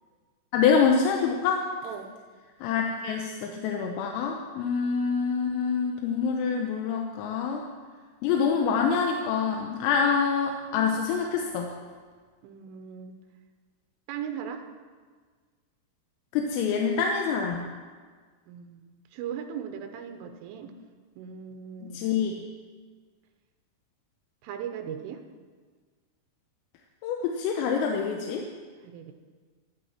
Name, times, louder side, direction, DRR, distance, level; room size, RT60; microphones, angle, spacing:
voice 1, 0.5-1.7 2.6-7.6 8.2-11.7 16.3-17.7 21.9-22.3 27.0-28.5, left 6 dB, 85° left, 2 dB, 3.6 m, -26 dB
voice 2, 12.4-13.2 14.1-14.6 18.5-20.7 21.2-22.0 24.4-25.2 28.8-29.1, right 8 dB, 75° right, 6 dB, 3.3 m, -38 dB
25.5 x 10.5 x 4.4 m, 1.5 s
omnidirectional pair, 5.9 m